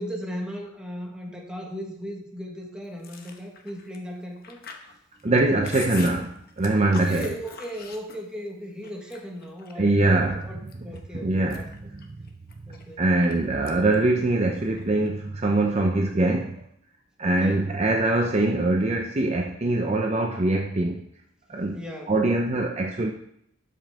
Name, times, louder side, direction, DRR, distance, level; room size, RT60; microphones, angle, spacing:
voice 1, 0.0-4.6 6.9-11.7 12.7-13.0 17.2-17.7 21.7-22.2, equal, 5° right, 0 dB, 1.4 m, -37 dB
Chewing mastication, 3.0-8.5 8.8-9.9 10.4-11.0 11.3-13.3 13.7-14.0 14.3-15.1, left 6 dB, 50° left, 1.0 m, -43 dB
voice 2, 5.2-7.3 9.8-10.4 11.1-12.0 13.0-16.6 17.2-21.0 21.5-21.8 22.1-23.1, right 2 dB, 30° right, 2 dB, 0.6 m, -23 dB
12.5 x 5.4 x 3.6 m, 0.74 s
head